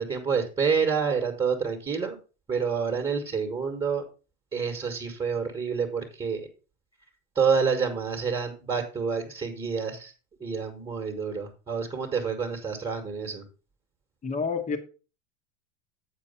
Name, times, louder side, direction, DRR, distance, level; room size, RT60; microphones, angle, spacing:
voice 1, 0.0-2.2 2.5-4.0 4.5-6.4 7.3-10.1 10.4-13.4, right 6 dB, 15° right, 1 dB, 1.6 m, -28 dB
voice 2, 14.2-14.8, left 5 dB, 20° left, 7 dB, 1.3 m, -28 dB
8.6 x 4.6 x 5.6 m, 0.35 s
hypercardioid pair, 110°, 38 cm